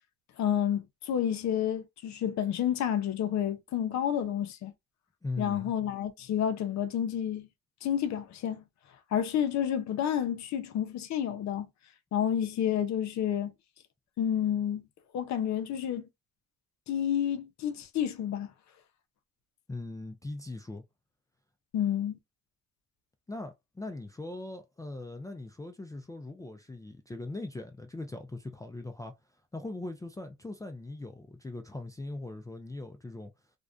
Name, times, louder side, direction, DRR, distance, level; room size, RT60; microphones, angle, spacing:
voice 1, 0.4-4.7 5.4-7.5 7.8-8.6 9.1-11.7 12.1-13.5 14.2-14.8 15.1-16.1 16.9-18.5 21.7-22.2, left 9 dB, 65° left, 0.5 m, -30 dB
voice 2, 5.2-5.7 19.7-20.8 23.3-29.1 29.5-33.3, left 2 dB, 10° left, 0.3 m, -40 dB
2.5 x 2.2 x 2.3 m
cardioid pair, 90°, 30 cm